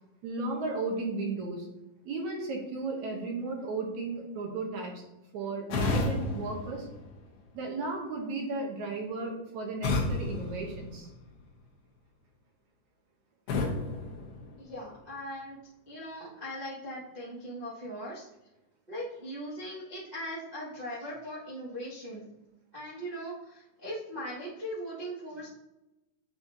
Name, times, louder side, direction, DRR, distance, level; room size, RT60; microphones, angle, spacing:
voice 1, 0.2-1.7 2.0-5.0 5.3-6.9 7.5-11.1, right 3 dB, 70° right, 0 dB, 2.1 m, -34 dB
sound 1, 5.7-7.7 9.8-11.5 13.5-15.1, left 2 dB, 65° left, 1.5 m, -33 dB
voice 2, 14.6-15.6 15.9-18.3 18.9-22.3 22.7-25.5, equal, 40° right, -9 dB, 0.6 m, -39 dB
8.8 x 4.3 x 2.8 m, 0.95 s
omnidirectional pair, 3.9 m